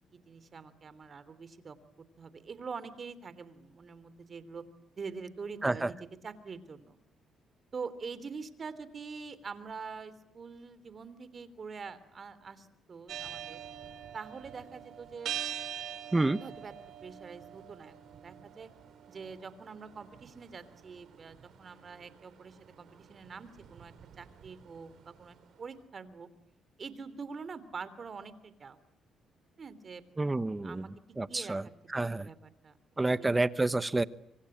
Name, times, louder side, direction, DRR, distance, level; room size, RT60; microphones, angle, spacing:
voice 1, 0.3-1.8 2.2-4.6 5.0-6.0 6.2-7.0 7.7-13.6 14.1-15.3 16.4-16.7 17.0-18.7 19.1-26.3 26.8-28.8 29.6-30.0 30.6-30.9 31.3-32.8 33.0-33.3, right 5 dB, 45° right, 15 dB, 3.2 m, -45 dB
sound 1, 13.1-25.2, right 9 dB, 70° right, 3.7 m, -45 dB
voice 2, 30.2-30.8 31.2-31.6 31.9-32.3 33.0-34.0, right 2 dB, 15° right, 15 dB, 1.0 m, -29 dB
25.5 x 25.5 x 8.7 m, 0.76 s
cardioid pair, 90°, 0 cm